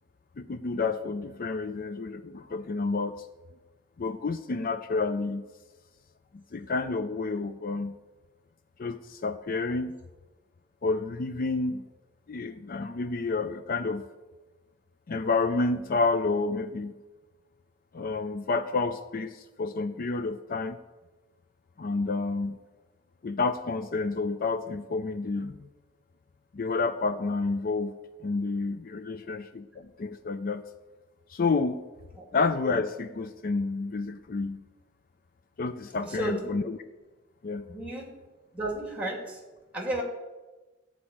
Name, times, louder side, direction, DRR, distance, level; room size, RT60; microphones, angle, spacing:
voice 1, 0.4-3.2 4.0-5.4 6.3-8.0 8.8-10.0 10.8-11.8 12.3-14.1 15.1-16.9 17.9-20.8 21.8-22.6 23.2-25.6 26.5-30.6 31.3-31.8 32.3-34.6 35.6-36.8 37.4-37.6, left 3 dB, 50° left, 10 dB, 0.5 m, -29 dB
voice 2, 36.0-36.6 37.7-38.1 38.5-39.4 39.7-40.0, right 1 dB, 10° right, 0 dB, 2.7 m, -33 dB
13.5 x 4.9 x 8.5 m, 1.2 s
head